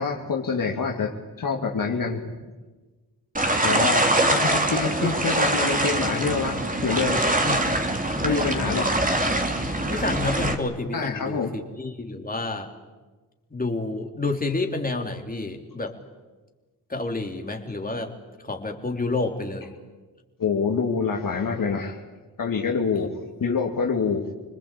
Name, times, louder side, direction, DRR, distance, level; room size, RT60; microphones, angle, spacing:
voice 1, 0.0-2.3 3.6-7.3 8.2-8.9 10.9-11.6 20.4-22.0 22.4-24.3, left 5 dB, 50° left, 1 dB, 2.7 m, -26 dB
sound 1, 3.3-10.5, right 1 dB, 20° right, 3.3 m, -23 dB
voice 2, 9.9-12.7 13.5-15.9 16.9-18.1 18.4-19.7, left 3 dB, 20° left, 3 dB, 3.7 m, -29 dB
27.5 x 20.0 x 8.6 m, 1.3 s
supercardioid pair, 50°, 41 cm